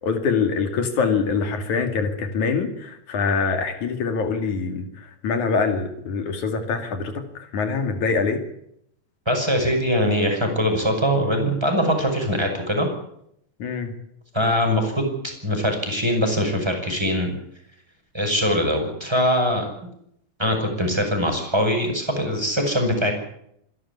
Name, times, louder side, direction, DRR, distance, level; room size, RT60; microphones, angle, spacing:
voice 1, 0.0-8.4 13.6-13.9, left 5 dB, 75° left, 7 dB, 3.8 m, -24 dB
voice 2, 9.3-12.9 14.3-17.3 18.1-19.7 20.4-23.1, equal, 10° right, 3 dB, 6.0 m, -22 dB
26.0 x 12.0 x 9.9 m, 0.73 s
omnidirectional pair, 3.4 m